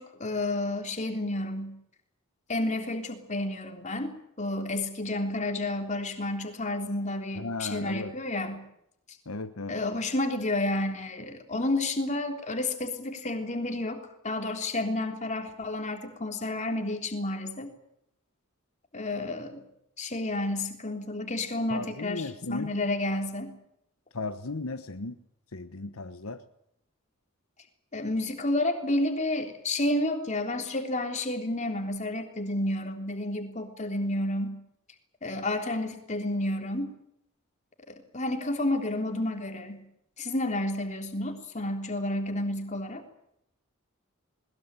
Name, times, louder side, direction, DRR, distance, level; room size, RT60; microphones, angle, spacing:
voice 1, 0.0-1.7 2.5-8.6 9.7-17.7 18.9-19.7 20.0-23.5 27.9-34.6 35.2-36.9 37.9-39.8 40.2-43.0, left 1 dB, 35° left, 4 dB, 3.5 m, -30 dB
voice 2, 7.3-8.1 9.3-9.8 21.7-22.7 24.1-25.2 25.5-26.4, left 3 dB, 75° left, 9 dB, 1.2 m, -35 dB
21.0 x 21.0 x 8.9 m, 0.76 s
head